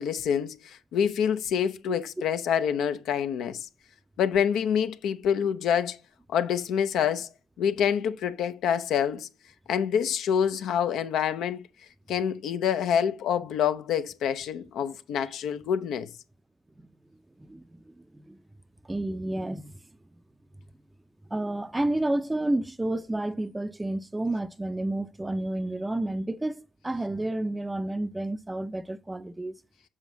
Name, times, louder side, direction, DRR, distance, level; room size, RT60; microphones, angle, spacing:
voice 1, 0.0-3.7 4.2-6.0 6.3-7.3 7.6-9.3 9.7-11.6 12.1-16.1, left 8 dB, 75° left, 0.5 m, -26 dB
voice 2, 17.4-18.4 18.8-19.7 21.3-29.5, right 1 dB, 15° right, 0.5 m, -30 dB
7.2 x 4.9 x 2.7 m
hypercardioid pair, 55°, 0 cm